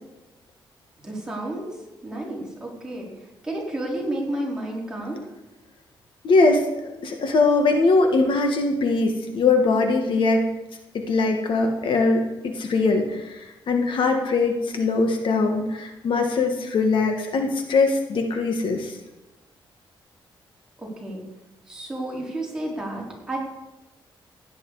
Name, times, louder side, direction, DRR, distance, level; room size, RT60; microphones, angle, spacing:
voice 1, 1.0-1.7 2.0-5.3 20.8-21.2 21.7-23.4, right 1 dB, 10° right, -4 dB, 4.4 m, -31 dB
voice 2, 6.2-10.4 10.9-19.0, left 3 dB, 70° left, 4 dB, 1.8 m, -21 dB
16.5 x 10.5 x 4.9 m, 1.0 s
cardioid pair, 130°, 9 cm